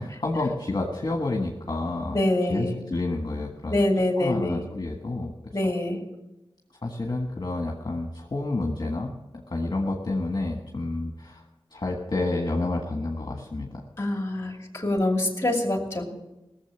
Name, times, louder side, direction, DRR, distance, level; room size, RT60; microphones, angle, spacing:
voice 1, 0.0-2.2 2.5-3.8 4.2-5.6 6.8-9.1 9.5-11.4 11.7-13.8, left 2 dB, 45° left, 1 dB, 1.6 m, -29 dB
voice 2, 2.1-2.8 3.7-4.6 5.5-6.0 14.0-16.0, left 1 dB, 30° left, 2 dB, 2.6 m, -25 dB
17.5 x 7.4 x 7.1 m, 0.97 s
wide cardioid pair, 65°, 10 cm